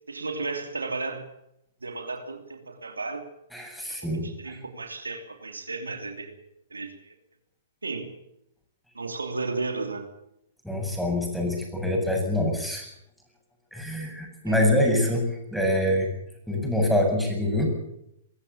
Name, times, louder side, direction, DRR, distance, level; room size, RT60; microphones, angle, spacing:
voice 1, 0.1-1.3 1.8-3.2 4.2-6.3 6.7-7.1 7.8-8.1 8.9-10.1 14.4-14.6, right 3 dB, 90° right, 6 dB, 3.0 m, -33 dB
voice 2, 3.5-4.5 10.6-12.9 13.7-16.1 16.5-17.7, left 1 dB, ahead, 1 dB, 7.9 m, -25 dB
23.5 x 14.0 x 8.6 m, 0.79 s
hypercardioid pair, 120°, 0 cm